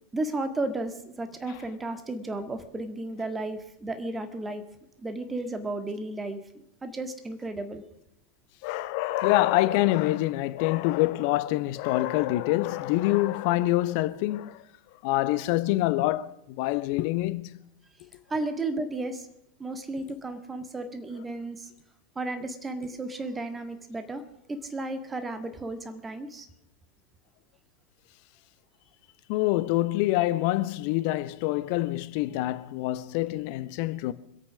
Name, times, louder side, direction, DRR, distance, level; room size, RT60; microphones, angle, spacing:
voice 1, 0.1-4.6 5.0-6.4 6.8-7.8 18.3-19.3 19.6-21.7 22.2-24.2 24.5-26.5, right 2 dB, 15° right, 1.7 m, -33 dB
voice 2, 8.6-14.6 15.0-17.6 29.3-34.1, left 17 dB, 45° left, 0.8 m, -26 dB
25.5 x 8.5 x 6.3 m
figure-of-eight pair, 90°, 0 cm